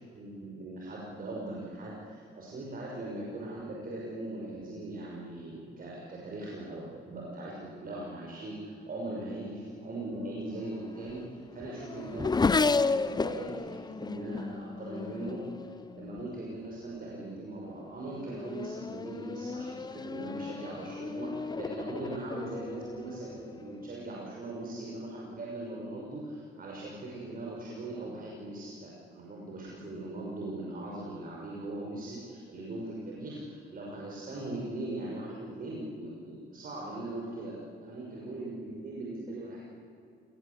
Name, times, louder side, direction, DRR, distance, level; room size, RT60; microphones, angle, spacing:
voice 1, 0.1-11.2 11.5-39.6, right 2 dB, 45° right, -3 dB, 6.0 m, -40 dB
Race car auto racing / Accelerating revving vroom, 10.5-16.4 17.2-17.6 18.0-23.9, left 4 dB, 20° left, 0.6 m, -33 dB
27.0 x 20.0 x 8.4 m, 2.5 s
cardioid pair, 90°, 20 cm